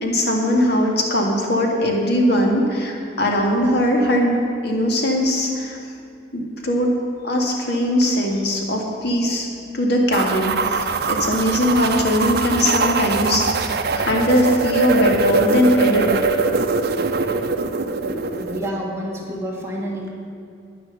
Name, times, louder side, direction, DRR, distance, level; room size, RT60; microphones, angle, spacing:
voice 1, 0.0-5.8 6.3-6.9 7.2-9.5 9.7-16.2, equal, 60° left, 0 dB, 1.9 m, -20 dB
sound 1, 10.1-18.7, right 4 dB, 60° right, 0.6 m, -22 dB
voice 2, 18.1-20.1, equal, 15° right, -2 dB, 1.7 m, -29 dB
10.5 x 9.9 x 6.7 m, 2.4 s
head